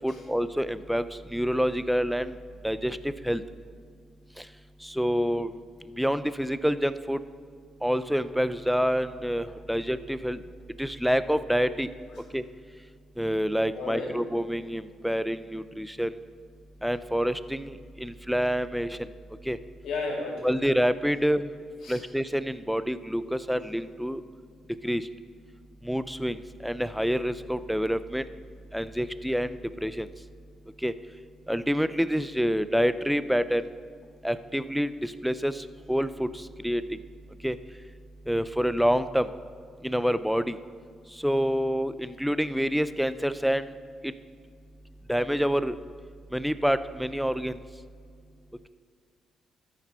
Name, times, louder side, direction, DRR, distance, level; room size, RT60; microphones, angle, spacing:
voice 1, 0.0-2.4 2.6-3.4 4.4-4.5 4.8-5.5 6.0-7.2 7.8-10.4 10.8-11.9 12.3-12.4 13.2-16.1 16.8-19.0 19.5-19.6 20.4-21.5 21.9-24.2 24.8-25.1 25.8-28.2 28.7-30.1 30.8-30.9 31.5-33.7 34.2-36.8 37.4-37.6 38.3-39.3 39.8-40.6 41.2-43.7 44.0-44.1 45.1-45.8 46.3-47.6, equal, ahead, 14 dB, 0.4 m, -27 dB
voice 2, 13.7-14.1 19.8-20.5 21.8-22.0, left 3 dB, 75° left, -1 dB, 2.5 m, -33 dB
13.5 x 5.0 x 5.4 m, 2.1 s
cardioid pair, 90°, 0 cm